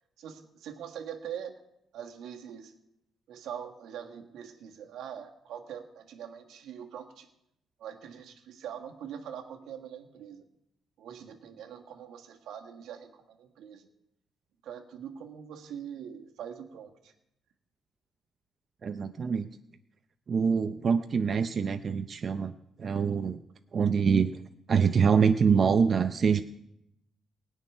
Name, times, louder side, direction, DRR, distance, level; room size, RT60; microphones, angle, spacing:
voice 1, 0.2-1.6 1.9-2.7 3.3-7.3 7.8-10.5 11.0-13.9 14.6-17.1, right 8 dB, 80° right, 3 dB, 1.7 m, -43 dB
voice 2, 18.8-19.5 20.3-22.5 22.8-23.4 23.7-24.3 24.7-26.4, right 6 dB, 45° right, 9 dB, 0.6 m, -25 dB
17.0 x 6.4 x 9.8 m, 0.82 s
cardioid pair, 90°, 0 cm